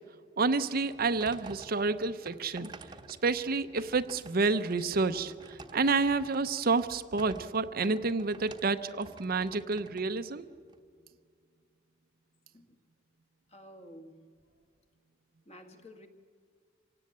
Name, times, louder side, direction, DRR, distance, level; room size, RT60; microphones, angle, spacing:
voice 1, 0.4-2.7 3.2-10.5, right 4 dB, 50° right, 10 dB, 0.7 m, -29 dB
sound 1, 0.6-10.8, right 3 dB, 25° right, 1.0 m, -51 dB
voice 2, 13.5-14.3 15.5-16.1, equal, 35° left, 5 dB, 1.8 m, -51 dB
26.5 x 17.5 x 8.6 m, 2.1 s
head